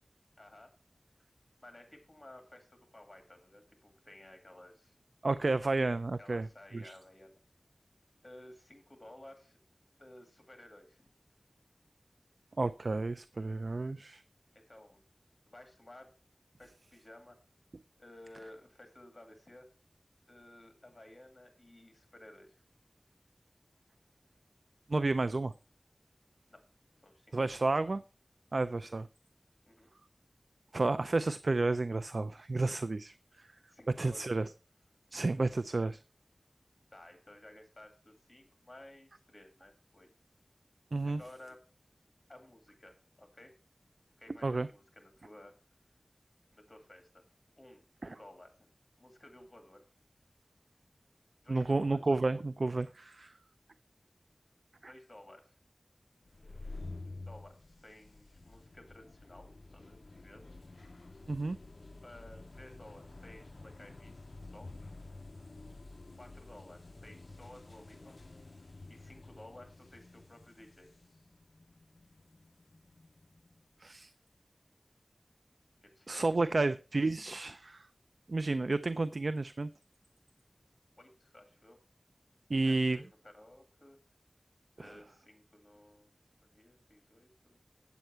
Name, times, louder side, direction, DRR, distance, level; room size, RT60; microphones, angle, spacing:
voice 1, 0.4-0.7 1.6-4.9 6.2-7.4 8.2-9.6 10.0-11.1 14.7-15.0 15.5-16.1 16.6-17.4 18.0-19.7 20.3-22.6 26.5-26.6 27.0-27.4 29.7-29.9 33.7-34.5 36.9-40.1 41.0-41.6 42.3-43.5 44.2-45.5 46.5-47.2 47.6-48.7 49.0-49.8 51.4-52.0 54.8-55.6 57.0-60.0 60.2-60.5 62.0-64.1 64.4-64.7 66.2-68.2 68.9-70.9 75.8-76.2 81.0-81.8 82.6-84.0 84.8-86.1 86.4-87.6, left 1 dB, 40° left, 2.2 m, -55 dB
voice 2, 5.2-6.5 6.7-6.9 12.6-14.2 24.9-25.5 27.3-28.0 28.5-29.1 30.7-33.1 34.0-34.5 35.1-36.0 40.9-41.2 44.4-44.7 51.5-53.3 54.8-54.9 61.3-61.6 73.8-74.1 76.1-77.9 78.3-79.7 82.5-83.0 84.8-84.9, right 3 dB, 75° right, 0.3 m, -31 dB
sound 1, 56.2-73.6, left 2 dB, 65° left, 0.4 m, -50 dB
8.2 x 7.8 x 4.4 m
wide cardioid pair, 60°, 0 cm